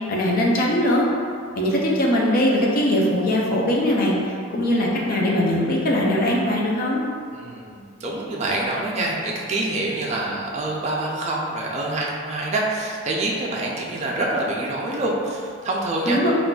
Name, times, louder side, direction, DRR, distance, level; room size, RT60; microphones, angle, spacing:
voice 1, 0.1-1.0 1.6-4.1 4.5-7.0 16.1-16.3, left 1 dB, 45° left, -3 dB, 0.5 m, -20 dB
voice 2, 7.3-16.3, right 2 dB, 35° right, -3 dB, 0.4 m, -26 dB
3.7 x 2.4 x 2.3 m, 2.2 s
head